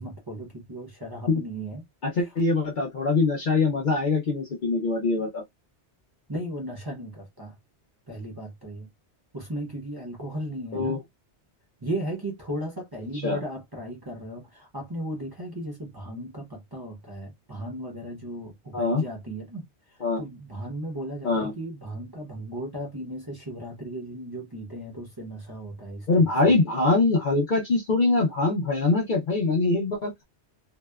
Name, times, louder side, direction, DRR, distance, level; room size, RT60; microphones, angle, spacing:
voice 1, 0.0-1.8 6.3-7.6 8.1-8.9 9.3-11.0 11.8-26.3, right 1 dB, 25° right, 0.7 m, -36 dB
voice 2, 2.0-5.4 10.7-11.0 13.2-13.4 18.7-19.0 20.0-20.2 21.2-21.5 26.1-30.2, left 3 dB, 55° left, 0.6 m, -23 dB
2.7 x 2.1 x 2.2 m
omnidirectional pair, 1.2 m